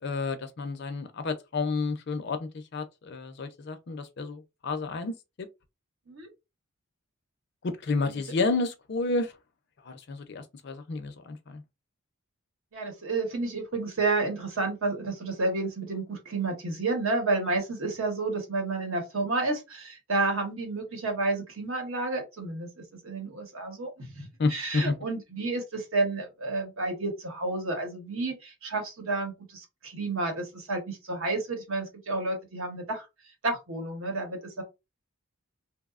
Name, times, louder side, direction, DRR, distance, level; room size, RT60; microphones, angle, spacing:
voice 1, 0.0-5.1 5.4-5.5 7.6-9.3 9.9-11.6 24.4-24.9, left 3 dB, 50° left, 0.4 m, -30 dB
voice 2, 12.7-33.0 33.4-34.6, right 3 dB, 70° right, 0.9 m, -31 dB
2.8 x 2.0 x 2.4 m
head